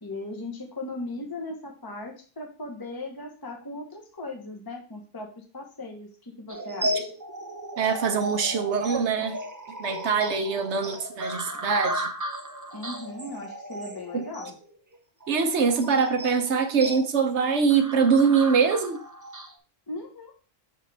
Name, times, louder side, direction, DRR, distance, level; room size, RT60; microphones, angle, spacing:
voice 1, 0.0-7.1 12.7-14.6 19.9-20.3, left 2 dB, 20° left, 1.0 m, -38 dB
sound 1, 6.5-19.5, right 1 dB, 20° right, 0.5 m, -35 dB
voice 2, 7.8-9.4 9.8-12.1 14.1-14.2 15.3-19.0, right 5 dB, 70° right, 1.0 m, -23 dB
6.4 x 5.3 x 3.3 m
omnidirectional pair, 1.2 m